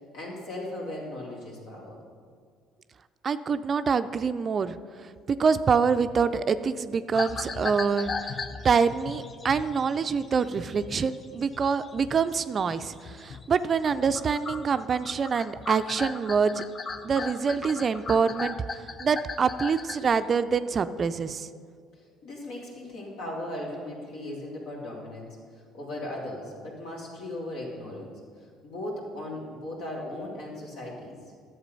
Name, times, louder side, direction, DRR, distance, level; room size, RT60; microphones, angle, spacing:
voice 1, 0.1-2.0 22.0-25.3 25.7-28.1 28.4-31.2, left 1 dB, 70° left, -3 dB, 2.8 m, -37 dB
voice 2, 3.2-4.8 5.0-8.3 8.6-16.6 17.0-21.5, right 5 dB, 40° right, 12 dB, 0.4 m, -26 dB
sound 1, 7.1-13.6 13.8-20.2, left 4 dB, 40° left, 0.7 m, -38 dB
11.0 x 7.4 x 5.3 m, 2.1 s
hypercardioid pair, 60°, 0 cm